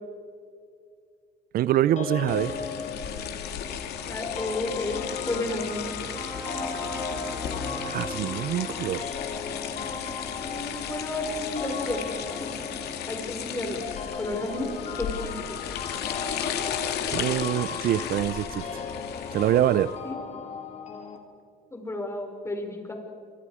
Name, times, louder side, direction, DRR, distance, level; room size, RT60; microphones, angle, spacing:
voice 1, 1.5-2.5 7.8-9.0 17.1-18.8 19.3-20.0, right 12 dB, 60° right, 18 dB, 0.5 m, -25 dB
sound 1, 2.0-21.2, left 5 dB, 45° left, 3.1 m, -37 dB
sound 2, 2.3-20.0, left 8 dB, 75° left, 2.6 m, -35 dB
voice 2, 4.0-5.0 5.3-5.9 10.4-12.0 12.4-12.8 13.1-13.8 14.1-14.7 15.0-15.6 20.0-20.2 21.7-22.9, left 2 dB, 15° left, 3 dB, 5.2 m, -32 dB
sound 3, 5.6-13.5, right 1 dB, 15° right, 2.9 m, -42 dB
29.0 x 25.0 x 5.0 m, 2.2 s
cardioid pair, 110°, 17 cm